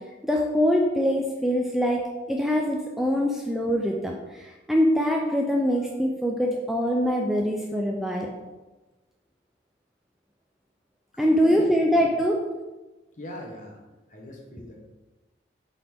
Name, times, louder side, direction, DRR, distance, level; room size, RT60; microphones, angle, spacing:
voice 1, 0.2-2.0 2.3-8.3 11.2-12.4, equal, ahead, -1 dB, 0.4 m, -23 dB
voice 2, 11.1-11.7 12.0-12.1 13.2-14.8, left 1 dB, 40° left, 0 dB, 1.2 m, -41 dB
7.6 x 4.0 x 3.6 m, 1.1 s
head